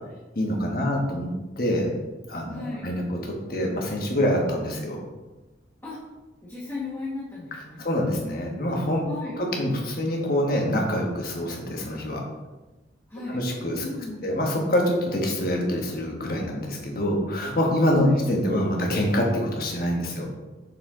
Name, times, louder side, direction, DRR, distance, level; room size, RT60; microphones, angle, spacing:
voice 1, 0.3-1.9 2.3-3.0 3.5-5.0 7.8-9.0 9.6-12.2 13.3-13.8 14.2-20.3, equal, 50° left, 0 dB, 1.2 m, -25 dB
voice 2, 2.5-2.8 5.8-6.0 6.4-7.8 9.0-9.4 13.1-13.4 13.8-14.2 18.0-18.2, left 3 dB, 15° left, -10 dB, 1.4 m, -35 dB
6.8 x 4.4 x 3.7 m, 1.1 s
head